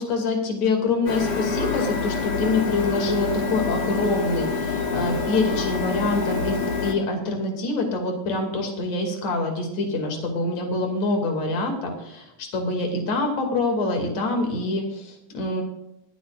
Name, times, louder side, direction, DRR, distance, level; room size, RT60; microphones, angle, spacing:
voice 1, 0.0-15.6, left 2 dB, 60° left, 2 dB, 3.7 m, -25 dB
Printer, 1.1-6.9, left 4 dB, 45° left, 1.6 m, -26 dB
23.5 x 10.0 x 2.5 m, 0.89 s
omnidirectional pair, 3.6 m